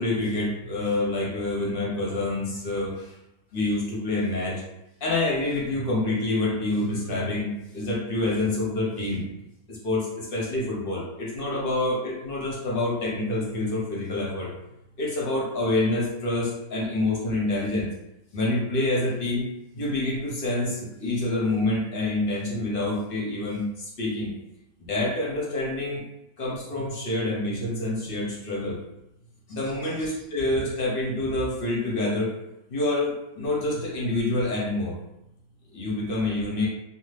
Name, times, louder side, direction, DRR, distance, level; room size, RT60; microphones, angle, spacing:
voice 1, 0.0-3.2 3.5-4.6 5.0-9.2 9.7-14.5 15.0-17.9 18.3-19.4 19.8-24.3 24.8-26.0 26.4-28.8 29.5-32.3 32.7-34.9 35.7-36.7, left 2 dB, 45° left, -4 dB, 0.8 m, -27 dB
2.7 x 2.3 x 3.2 m, 0.88 s
omnidirectional pair, 1.7 m